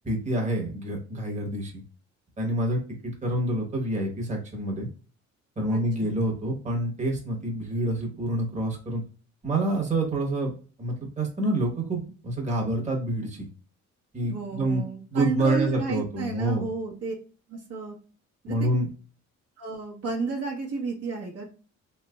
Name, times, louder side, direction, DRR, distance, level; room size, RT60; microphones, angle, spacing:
voice 1, 0.0-1.8 2.4-4.9 5.6-9.0 9.4-10.5 10.8-13.5 14.1-14.8 15.1-16.7 18.5-18.9, right 1 dB, 25° right, -1 dB, 1.1 m, -27 dB
voice 2, 5.7-6.1 14.2-17.1 17.5-18.0 18.4-18.6 19.6-21.5, right 4 dB, 55° right, -1 dB, 1.0 m, -32 dB
3.3 x 3.0 x 2.3 m, 0.38 s
cardioid pair, 90°, 30 cm